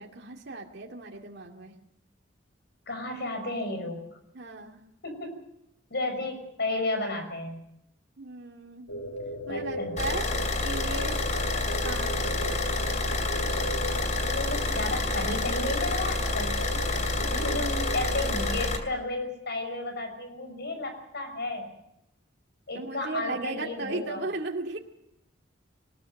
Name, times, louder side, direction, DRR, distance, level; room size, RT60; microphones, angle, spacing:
voice 1, 0.0-1.8 4.3-4.8 8.2-8.9 9.5-10.3 10.6-11.2 11.8-12.5 17.3-17.6 22.7-24.8, right 2 dB, 60° right, 0 dB, 2.4 m, -36 dB
voice 2, 2.9-4.0 5.0-5.3 5.9-7.7 9.5-9.9 14.3-16.6 17.3-21.7 22.7-24.2, left 2 dB, 60° left, 6 dB, 5.9 m, -33 dB
sound 1, 8.9-18.5, equal, 80° left, 1.6 m, -37 dB
Car / Idling, 10.0-18.8, left 2 dB, 40° left, 2.8 m, -28 dB
20.5 x 20.5 x 6.5 m, 0.80 s
head